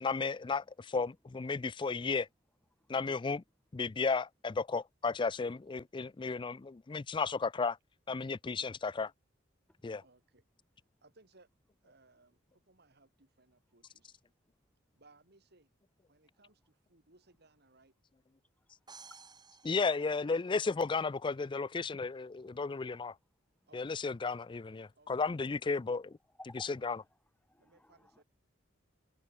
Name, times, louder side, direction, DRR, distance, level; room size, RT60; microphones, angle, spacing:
voice 1, 0.0-2.3 2.9-3.4 3.7-7.8 8.1-9.1 9.8-10.0 19.6-23.1 23.7-26.2 26.8-27.0, left 4 dB, 25° left, 0.4 m, -34 dB
voice 2, 10.0-10.4 11.0-11.5 11.8-14.2 14.9-15.7 16.1-17.9 20.0-20.4 23.7-24.0 24.9-25.3 26.7-26.8 27.6-28.2, right 2 dB, 60° right, 3.9 m, -65 dB
voice 3, 18.6-19.3 21.9-22.1 26.3-27.1 27.4-28.2, left 1 dB, 10° left, 2.3 m, -57 dB
sound 1, 18.9-20.8, right 5 dB, 25° right, 5.2 m, -55 dB
head